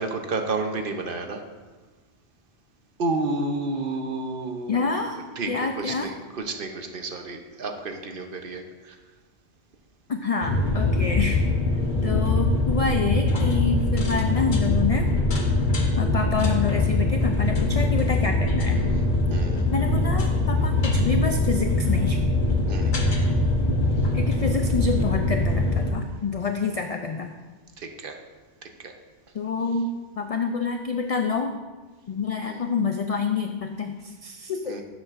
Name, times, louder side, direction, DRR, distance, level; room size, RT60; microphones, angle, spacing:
voice 1, 0.0-1.4 3.0-5.0 5.4-8.9 19.3-19.6 22.7-22.9 27.8-28.1 28.8-28.9 32.5-32.6 34.7-34.8, right 3 dB, 55° right, 5 dB, 0.9 m, -31 dB
voice 2, 4.7-6.1 10.1-11.5 12.0-15.2 16.0-18.8 19.7-22.2 24.1-27.3 29.3-31.6 32.1-34.8, left 5 dB, 70° left, 5 dB, 0.3 m, -27 dB
sound 1, 10.4-25.9, left 2 dB, 45° left, 1.1 m, -22 dB
12.0 x 7.3 x 2.5 m, 1.3 s
omnidirectional pair, 1.2 m